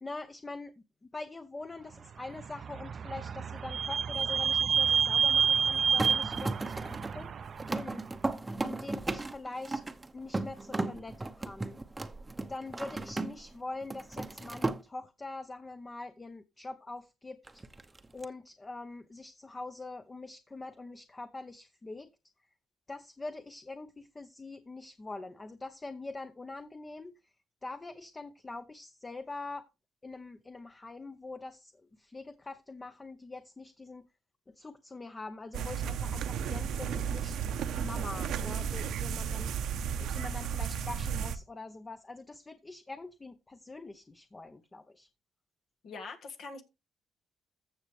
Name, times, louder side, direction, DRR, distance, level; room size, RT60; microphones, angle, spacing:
voice 1, 0.0-7.3 7.7-9.8 10.1-11.8 12.5-17.6 18.1-22.1 22.9-27.3 27.6-29.7 30.0-34.0 34.5-45.1, left 3 dB, 25° left, 0.8 m, -44 dB
Vehicle / Squeak, 2.3-7.9, right 6 dB, 50° right, 0.5 m, -29 dB
sound 1, 6.0-13.5 13.8-14.8 17.5-18.2, right 2 dB, 20° right, 0.8 m, -36 dB
sound 2, 35.5-41.4, right 7 dB, 80° right, 0.9 m, -33 dB
voice 2, 45.8-46.6, left 4 dB, 65° left, 1.7 m, -43 dB
14.5 x 6.4 x 3.2 m
cardioid pair, 90°, 0 cm